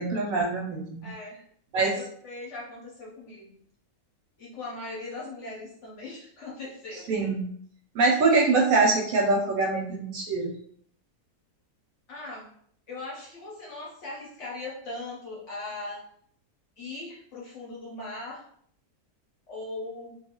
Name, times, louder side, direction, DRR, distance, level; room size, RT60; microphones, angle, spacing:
voice 1, 0.0-1.1 1.7-1.9 7.1-7.5 7.9-10.6, right 3 dB, 70° right, -1 dB, 0.9 m, -24 dB
voice 2, 1.0-1.4 1.9-3.6 4.4-7.1 12.1-12.5 12.9-16.0 16.8-18.4 19.5-20.1, left 2 dB, 60° left, -4 dB, 0.9 m, -39 dB
2.4 x 2.3 x 2.8 m, 0.62 s
omnidirectional pair, 1.6 m